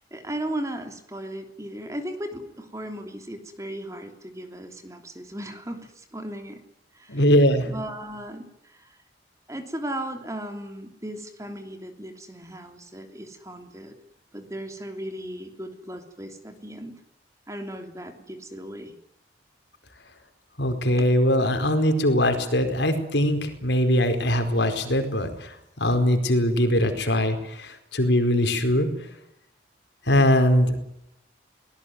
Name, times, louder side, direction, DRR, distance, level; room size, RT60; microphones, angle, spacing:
voice 1, 0.0-6.6 6.9-7.2 7.6-9.0 9.5-14.0 14.3-16.9 17.5-18.9, right 1 dB, 15° right, 6 dB, 3.1 m, -36 dB
voice 2, 7.1-7.7 20.6-28.9 30.1-30.7, left 1 dB, 80° left, 7 dB, 4.6 m, -21 dB
23.5 x 19.5 x 9.4 m, 0.81 s
head